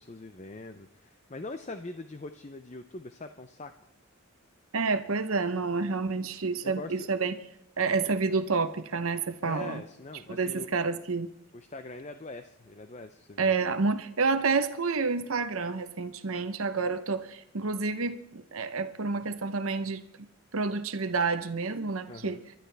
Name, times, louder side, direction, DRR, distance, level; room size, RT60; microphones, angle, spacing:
voice 1, 0.0-3.7 6.6-7.3 9.4-10.7 11.5-13.8 16.8-16.9 22.1-22.4, left 2 dB, 30° left, 9 dB, 0.6 m, -43 dB
voice 2, 4.7-7.3 7.8-9.8 10.3-11.3 13.4-20.0 20.5-22.4, right 4 dB, 75° right, 10 dB, 0.8 m, -29 dB
26.0 x 12.0 x 3.4 m, 0.82 s
head